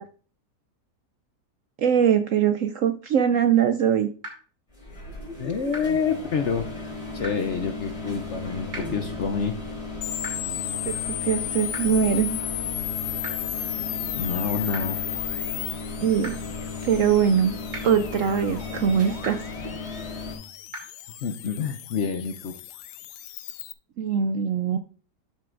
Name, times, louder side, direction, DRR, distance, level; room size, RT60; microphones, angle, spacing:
voice 1, 1.8-4.1 10.9-12.4 16.0-16.4 16.8-17.6 17.8-19.4 24.0-24.8, right 8 dB, 70° right, 9 dB, 0.8 m, -22 dB
sound 1, 4.2-4.3 5.7-5.8 7.2-7.3 8.7-8.8 10.2-10.3 11.7-11.8 13.2-13.3 14.7-14.8 16.2-16.3 17.7-17.8 19.2-19.3 20.7-20.8, right 1 dB, 50° right, 3.1 m, -35 dB
sound 2, 4.7-20.3, left 3 dB, 40° left, 5.2 m, -35 dB
voice 2, 5.4-6.7 7.1-9.6 14.1-15.0 21.2-22.5, left 6 dB, 60° left, 7 dB, 0.8 m, -27 dB
sound 3, 10.0-23.7, left 12 dB, 80° left, 1.2 m, -34 dB
13.0 x 7.8 x 2.5 m, 0.40 s
omnidirectional pair, 1.8 m